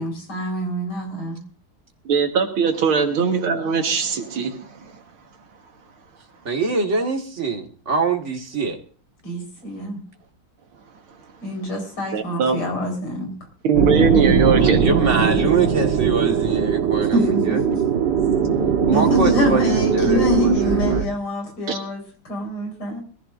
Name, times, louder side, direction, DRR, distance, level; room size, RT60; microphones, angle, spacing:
voice 1, 0.0-1.4 9.2-10.0 11.4-13.3 17.1-17.8 18.9-23.0, equal, 85° left, 1 dB, 5.5 m, -25 dB
voice 2, 2.1-4.9 12.1-12.6 13.6-14.8 21.7-21.8, right 6 dB, 80° right, 4 dB, 2.3 m, -20 dB
voice 3, 6.5-8.8 14.5-17.6 18.9-21.1, right 4 dB, 35° right, 3 dB, 2.0 m, -24 dB
sound 1, 13.7-21.0, right 6 dB, 60° right, 2.0 m, -20 dB
22.5 x 14.5 x 2.6 m, 0.39 s
omnidirectional pair, 2.3 m